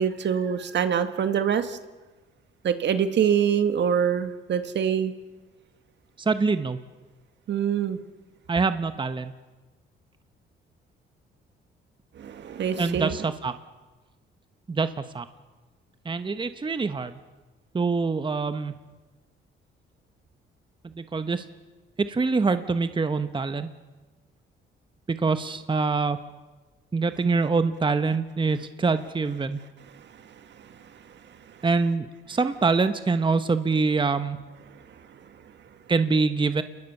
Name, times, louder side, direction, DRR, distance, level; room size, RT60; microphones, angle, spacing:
voice 1, 0.0-1.8 2.6-5.1 7.5-8.0 12.2-13.2, right 8 dB, 60° right, 9 dB, 1.9 m, -24 dB
voice 2, 6.2-6.8 8.5-9.3 12.8-13.5 14.7-15.3 16.0-17.2 17.7-18.7 20.8-21.5 22.0-23.7 25.1-26.2 26.9-29.6 31.6-34.4 35.9-36.6, right 4 dB, 25° right, 10 dB, 1.2 m, -25 dB
29.0 x 21.0 x 6.8 m, 1.2 s
cardioid pair, 90°, 20 cm